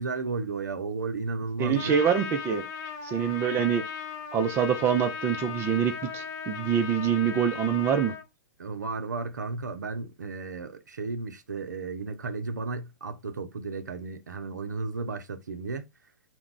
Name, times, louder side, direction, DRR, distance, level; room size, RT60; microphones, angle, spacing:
voice 1, 0.0-1.9 8.6-15.8, right 3 dB, 85° right, 0.5 m, -34 dB
voice 2, 1.6-2.6 3.0-3.8 4.3-8.1, right 8 dB, 25° right, 0.4 m, -25 dB
Trumpet, 1.7-8.2, left 6 dB, 30° left, 0.6 m, -37 dB
2.3 x 2.1 x 3.7 m
hypercardioid pair, 115°, 9 cm